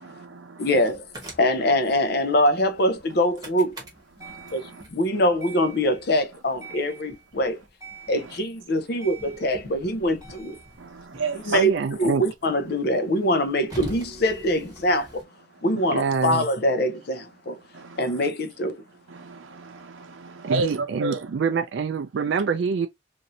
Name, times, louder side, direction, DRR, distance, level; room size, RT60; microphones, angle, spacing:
voice 1, 0.0-0.7 4.2-4.8 10.8-11.6 17.7-18.3 19.1-21.3, right 3 dB, 85° right, 0.7 m, -33 dB
voice 2, 0.6-1.1 1.4-3.8 4.5-7.6 8.1-10.6 11.3-11.7 12.0-15.2 15.6-17.6 18.0-18.8, left 1 dB, 55° left, 0.6 m, -23 dB
sound 1, 0.7-15.2, right 2 dB, 20° right, 0.9 m, -44 dB
voice 3, 11.5-12.2 15.9-16.4 20.4-22.9, right 5 dB, 60° right, 0.3 m, -25 dB
3.0 x 2.6 x 2.6 m
head